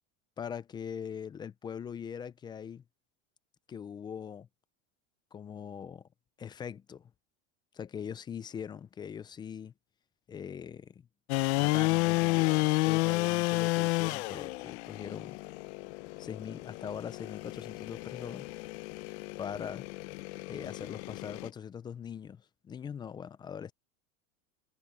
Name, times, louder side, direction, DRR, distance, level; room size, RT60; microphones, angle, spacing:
voice 1, 0.4-2.8 3.7-4.5 5.3-6.1 6.4-7.1 7.7-9.7 10.3-11.1 11.6-15.4 16.2-18.5 19.4-19.9 20.5-23.7, left 7 dB, 15° left, 0.3 m, -41 dB
sound 1, 11.3-21.5, left 23 dB, 65° left, 0.7 m, -31 dB
supercardioid pair, 145°, 36 cm